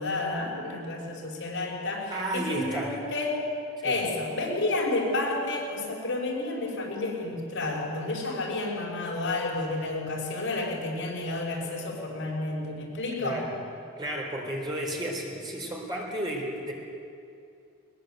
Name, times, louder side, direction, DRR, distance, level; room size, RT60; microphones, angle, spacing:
voice 1, 0.0-3.4 3.8-13.5, left 2 dB, 65° left, -2 dB, 5.6 m, -31 dB
voice 2, 2.1-3.0 3.8-4.0 13.2-13.5 14.0-16.7, right 1 dB, 20° right, -1 dB, 3.8 m, -32 dB
21.5 x 20.5 x 8.0 m, 2.5 s
head